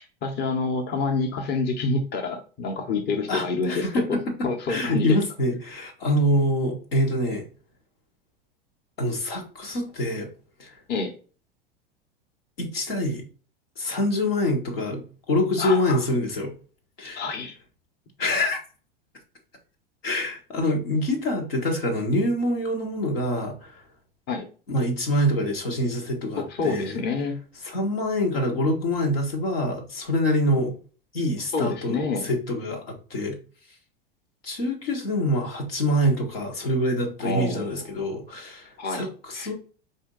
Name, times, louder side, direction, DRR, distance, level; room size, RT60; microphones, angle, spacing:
voice 1, 0.0-5.2 10.9-11.1 15.6-16.0 17.2-17.6 24.3-24.5 26.4-27.4 31.5-32.3 37.2-37.8 38.8-39.1 39.3-39.5, left 4 dB, 35° left, 0.9 m, -28 dB
voice 2, 3.3-7.4 9.0-10.3 10.6-10.7 12.6-13.2 13.8-15.0 15.3-16.5 17.0-17.3 18.2-18.6 20.0-23.8 24.7-27.0 27.6-30.7 31.1-33.4 34.4-39.5, left 1 dB, 85° left, 1.3 m, -25 dB
4.3 x 2.7 x 3.7 m
hypercardioid pair, 90°, 30 cm